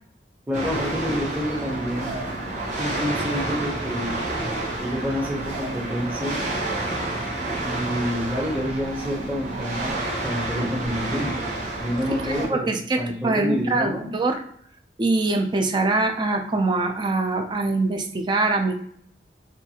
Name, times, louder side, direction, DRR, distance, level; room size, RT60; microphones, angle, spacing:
voice 1, 0.5-2.1 2.8-4.1 4.8-6.4 7.6-9.9 10.2-11.4 11.8-14.1, equal, 10° right, -3 dB, 0.7 m, -28 dB
sound 1, 0.5-12.5, right 2 dB, 45° right, 0.8 m, -29 dB
voice 2, 12.2-14.4 15.0-18.7, right 3 dB, 25° right, 5 dB, 0.3 m, -23 dB
2.5 x 2.3 x 2.8 m, 0.63 s
head